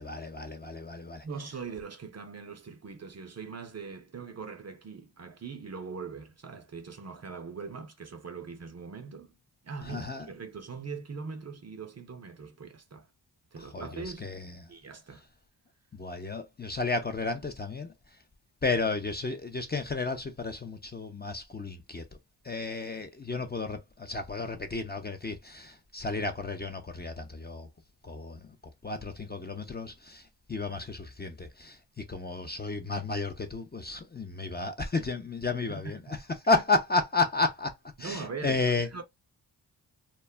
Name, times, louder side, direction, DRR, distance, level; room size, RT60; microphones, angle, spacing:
voice 1, 0.0-1.3 9.9-10.3 13.6-14.7 15.9-17.9 18.6-22.0 22.4-27.7 28.0-36.0 36.5-37.7 38.0-38.9, left 3 dB, 20° left, 0.5 m, -32 dB
voice 2, 1.2-9.3 9.6-13.1 13.5-14.3 14.7-15.2 28.1-28.2 35.7-36.2 36.5-36.6 38.0-38.6 38.9-39.0, right 5 dB, 35° right, 0.6 m, -41 dB
2.2 x 2.0 x 3.3 m
cardioid pair, 55°, 45 cm